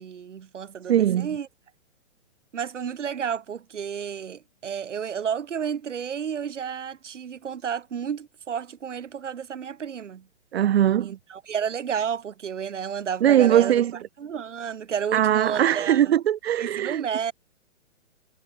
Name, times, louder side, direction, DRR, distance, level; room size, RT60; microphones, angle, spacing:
voice 1, 0.0-1.5 2.5-10.3 11.0-13.8 14.2-16.1 16.6-17.3, right 7 dB, 85° right, 2.6 m, -31 dB
voice 2, 0.9-1.3 10.5-11.2 13.2-14.0 15.1-17.0, right 11 dB, 60° right, 0.9 m, -20 dB
hypercardioid pair, 160°, 35 cm